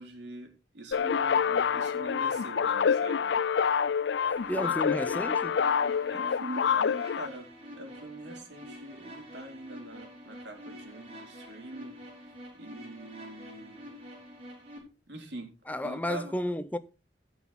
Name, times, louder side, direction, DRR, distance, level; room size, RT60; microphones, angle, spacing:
voice 1, 0.0-3.3 4.6-4.7 6.1-7.5 7.8-13.8 15.1-15.5 15.8-16.4, right 1 dB, 85° right, 3.7 m, -44 dB
sound 1, 0.9-7.3, left 7 dB, 85° left, 0.4 m, -27 dB
sound 2, 4.4-14.8, equal, 35° right, 4.2 m, -47 dB
voice 2, 4.5-5.6 15.7-16.8, left 1 dB, 10° left, 0.6 m, -32 dB
15.5 x 6.1 x 4.2 m
head